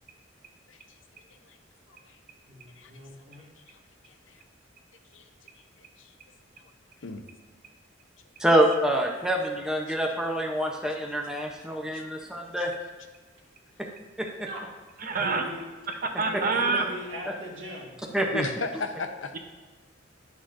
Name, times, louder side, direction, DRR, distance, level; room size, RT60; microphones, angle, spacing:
voice 1, 2.5-3.4 14.5-14.6 15.1-15.6 16.3-18.4, equal, 75° right, -3 dB, 1.8 m, -40 dB
voice 2, 4.1-4.4 5.1-5.2 6.0-6.1 7.0-7.2 11.6-11.7 11.9-12.0 12.4-12.5 18.3-19.3, left 3 dB, 75° left, 7 dB, 0.7 m, -35 dB
voice 3, 8.4-12.7 14.2-14.5 18.1-18.4, right 1 dB, 5° right, 0 dB, 0.7 m, -26 dB
voice 4, 15.1-15.4 16.2-16.8, right 4 dB, 50° right, 4 dB, 0.8 m, -25 dB
9.6 x 6.2 x 2.6 m, 1.4 s
head